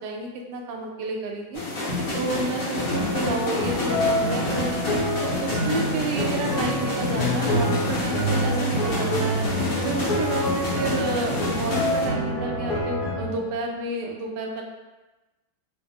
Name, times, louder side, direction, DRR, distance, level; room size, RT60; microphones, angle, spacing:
voice 1, 0.0-1.6 2.1-4.8 5.2-9.4 9.8-14.6, right 3 dB, 80° right, 1 dB, 1.2 m, -31 dB
sound 1, 1.5-12.0, left 2 dB, 60° left, 1.7 m, -28 dB
sound 2, 2.9-13.3, equal, 35° left, 0.9 m, -27 dB
5.7 x 2.0 x 3.5 m, 1.1 s
omnidirectional pair, 1.8 m